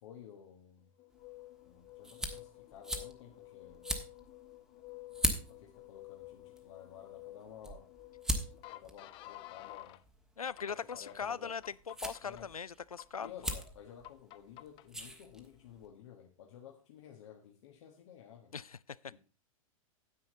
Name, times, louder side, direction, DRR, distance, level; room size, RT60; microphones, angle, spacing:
voice 1, 0.0-0.9 1.6-4.0 5.6-7.9 8.6-10.0 10.7-11.5 12.2-12.5 13.2-18.5 19.1-19.2, left 9 dB, 55° left, 1.3 m, -53 dB
sound 1, 1.0-10.0 10.5-11.2 11.6-12.4 13.0-13.6 14.0-14.9, left 18 dB, 30° left, 0.5 m, -52 dB
sound 2, 1.1-15.9, equal, 5° right, 1.4 m, -42 dB
voice 2, 10.4-13.3 18.5-19.0, left 6 dB, 85° left, 0.4 m, -40 dB
9.7 x 9.0 x 4.0 m
figure-of-eight pair, 95°, 18 cm